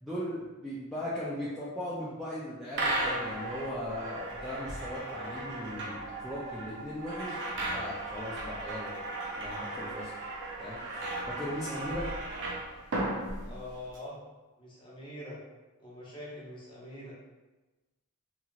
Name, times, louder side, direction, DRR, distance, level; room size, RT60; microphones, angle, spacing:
voice 1, 0.0-8.9 9.4-10.1 10.6-12.1, equal, ahead, -10 dB, 0.4 m, -38 dB
sound 1, 2.7-14.0, right 2 dB, 55° right, 0.6 m, -36 dB
voice 2, 13.4-14.2 14.6-15.4 15.8-17.2, left 1 dB, 20° left, -6 dB, 0.8 m, -44 dB
2.9 x 2.8 x 2.4 m, 1.2 s
head